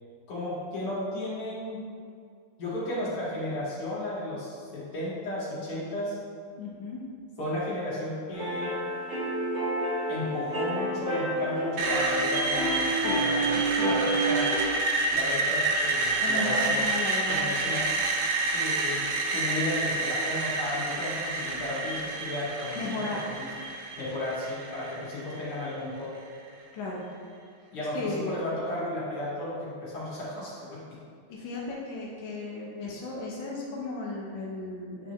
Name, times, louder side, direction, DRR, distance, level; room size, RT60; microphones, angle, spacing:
voice 1, 0.3-1.8 2.6-6.2 7.4-8.8 10.1-14.5 15.1-16.8 17.3-17.9 18.4-23.0 23.3-23.5 24.0-26.1 27.7-30.8, left 1 dB, 85° left, -8 dB, 2.8 m, -34 dB
voice 2, 6.6-7.0 12.9-13.2 13.5-13.9 16.2-17.8 22.7-23.3 26.7-27.0 27.9-28.3 31.3-35.1, left 2 dB, 65° left, -4 dB, 1.6 m, -35 dB
sound 1, 8.3-14.6, right 2 dB, 30° right, 1.8 m, -29 dB
Screech, 11.8-25.7, right 2 dB, 65° right, 1.1 m, -29 dB
9.2 x 4.1 x 3.4 m, 2.2 s
omnidirectional pair, 2.4 m